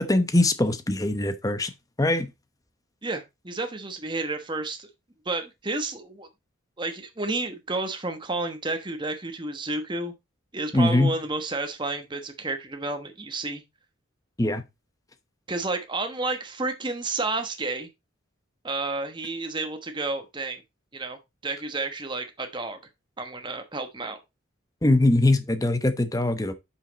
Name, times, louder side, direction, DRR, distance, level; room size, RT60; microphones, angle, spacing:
voice 1, 0.0-1.7 2.0-2.3 10.7-11.1 14.4-14.6 24.8-26.5, left 2 dB, 15° left, 0.8 m, -22 dB
voice 2, 3.0-4.9 5.2-6.3 6.8-10.1 10.5-13.6 15.5-17.9 18.6-20.6 20.9-22.8 23.2-24.2, right 3 dB, 20° right, 1.1 m, -31 dB
8.2 x 5.7 x 4.0 m
head